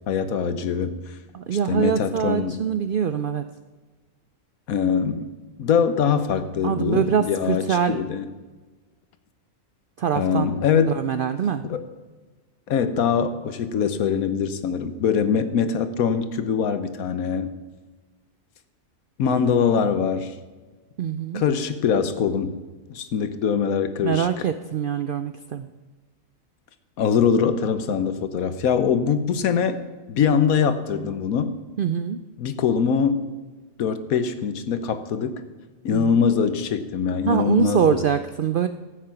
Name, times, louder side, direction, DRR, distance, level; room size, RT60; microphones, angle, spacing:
voice 1, 0.1-1.0 1.5-2.6 4.7-5.3 5.6-8.3 10.1-11.0 11.6-11.8 12.7-17.5 19.2-20.3 21.3-22.6 22.9-24.5 27.0-29.8 30.1-31.6 32.4-33.3 33.8-35.4 35.8-38.0, left 7 dB, 90° left, 11 dB, 1.3 m, -23 dB
voice 2, 1.3-3.4 6.6-8.0 10.0-10.5 10.9-11.6 21.0-21.4 24.0-25.7 31.8-32.2 35.9-36.1 37.3-38.7, right 7 dB, 75° right, 10 dB, 0.5 m, -24 dB
13.5 x 8.2 x 5.8 m, 1.3 s
omnidirectional pair, 1.5 m